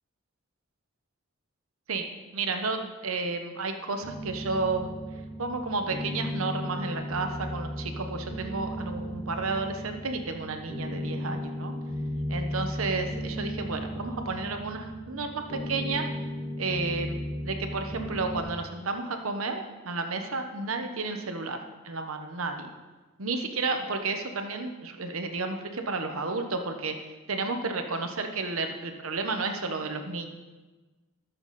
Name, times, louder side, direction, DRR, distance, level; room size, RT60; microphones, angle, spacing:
voice 1, 2.3-4.9 5.4-11.7 12.3-16.1 16.6-21.6 21.8-22.7 23.2-27.0 27.3-30.3, right 3 dB, 90° right, 5 dB, 1.0 m, -32 dB
sound 1, 4.0-18.4, equal, 70° left, 4.5 m, -35 dB
20.0 x 7.0 x 4.2 m, 1.2 s
head